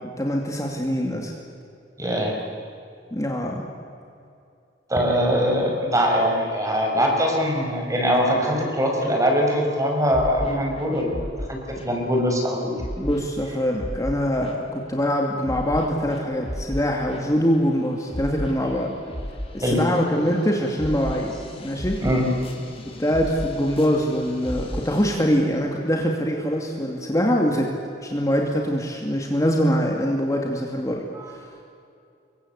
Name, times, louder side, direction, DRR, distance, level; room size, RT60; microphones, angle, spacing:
voice 1, 0.0-1.3 3.1-3.7 13.0-18.9 19.5-22.0 23.0-27.7 28.0-31.0, equal, 20° left, 1 dB, 2.4 m, -23 dB
voice 2, 2.0-2.3 4.9-11.6 11.8-12.7 19.6-19.8 22.0-22.2 31.1-31.3, equal, 20° right, 1 dB, 5.8 m, -22 dB
sound 1, 10.1-11.4 11.8-12.0 12.8-13.2 13.8-14.7 15.4-16.7 17.1-17.5 17.9-25.1, equal, 35° left, 3.9 m, -35 dB
27.5 x 23.5 x 8.3 m, 2.5 s
head